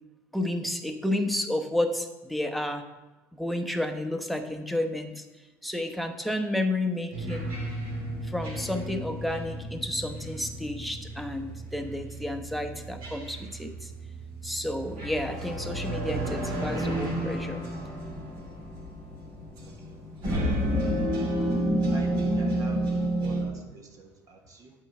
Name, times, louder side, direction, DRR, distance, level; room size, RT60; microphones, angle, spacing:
voice 1, 0.3-2.8 3.3-5.2 5.6-7.5 8.2-13.9 14.4-17.6 21.0-21.3, left 1 dB, ahead, 5 dB, 0.9 m, -31 dB
sound 1, 7.1-23.5, right 1 dB, 65° right, 2.8 m, -31 dB
voice 2, 19.6-20.9 21.9-24.7, right 3 dB, 45° right, 2 dB, 1.3 m, -45 dB
8.9 x 3.9 x 6.7 m, 1.1 s
hypercardioid pair, 70°, 8 cm